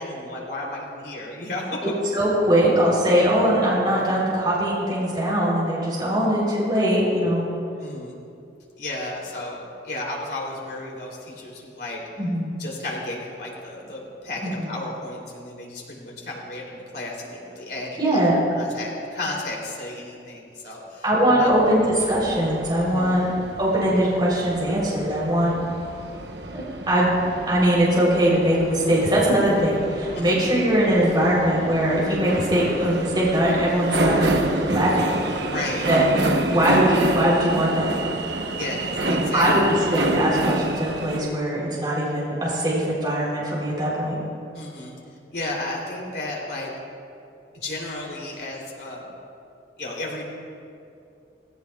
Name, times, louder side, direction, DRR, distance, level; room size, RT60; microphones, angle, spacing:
voice 1, 0.0-1.8 7.8-8.2 8.8-12.0 12.6-18.3 18.5-21.5 22.8-23.1 30.1-30.5 35.5-35.9 38.6-39.7 44.5-45.0 45.3-46.7 47.5-49.1 49.8-50.3, left 2 dB, 65° left, -3 dB, 3.2 m, -33 dB
voice 2, 2.1-7.4 12.2-12.6 14.4-14.7 18.0-18.4 21.0-23.3 23.6-25.6 26.5-27.1 27.5-35.2 35.9-37.9 39.1-44.2, right 1 dB, 25° right, -6 dB, 3.6 m, -21 dB
sound 1, 21.5-41.2, right 2 dB, 75° right, 1.0 m, -28 dB
18.5 x 16.5 x 2.4 m, 2.6 s
head